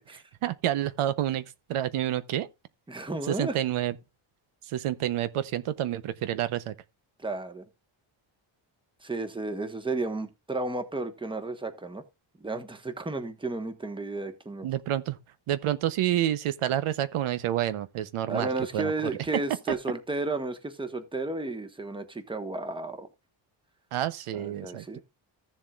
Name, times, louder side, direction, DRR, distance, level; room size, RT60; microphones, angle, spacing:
voice 1, 0.4-2.5 3.3-3.9 4.6-6.7 14.6-15.2 15.5-19.1 19.7-19.8 23.9-25.0, right 12 dB, 85° right, 0.9 m, -29 dB
voice 2, 2.9-3.6 7.2-7.7 9.0-12.0 12.4-14.7 18.3-23.1 24.3-25.0, right 2 dB, 10° right, 1.2 m, -33 dB
15.0 x 7.3 x 2.4 m
cardioid pair, 145°, 49 cm